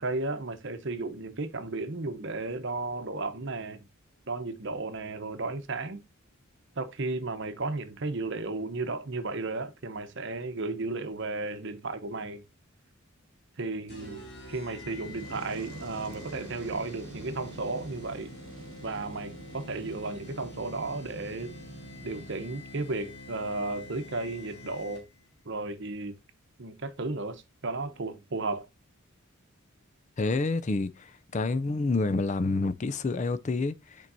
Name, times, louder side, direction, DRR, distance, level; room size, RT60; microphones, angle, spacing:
voice 1, 0.0-3.9 4.3-6.0 6.8-12.4 13.6-18.3 18.8-21.5 22.0-25.1 25.5-26.2 26.6-28.7, right 3 dB, 55° right, 0.9 m, -34 dB
sound 1, 13.9-25.3, left 1 dB, 50° left, 2.6 m, -47 dB
Fire, 14.7-22.4, right 2 dB, 85° right, 1.0 m, -46 dB
voice 2, 30.2-30.9 31.3-33.8, left 3 dB, 35° left, 0.4 m, -27 dB
8.7 x 4.5 x 2.6 m
head